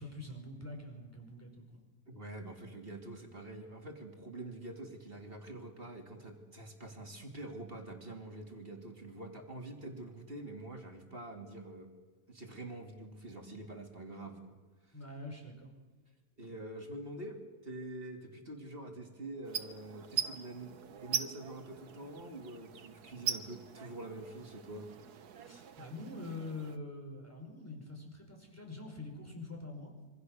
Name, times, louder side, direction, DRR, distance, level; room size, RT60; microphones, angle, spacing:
voice 1, 0.0-1.8 14.9-15.7 25.5-29.9, left 2 dB, 10° left, 2 dB, 5.0 m, -45 dB
voice 2, 2.1-11.9 12.3-14.5 14.8-14.9 16.4-24.9, right 2 dB, 35° right, 2 dB, 3.1 m, -46 dB
sound 1, 19.4-26.8, right 9 dB, 85° right, 1.6 m, -41 dB
26.0 x 24.5 x 6.6 m, 1.2 s
omnidirectional pair, 1.6 m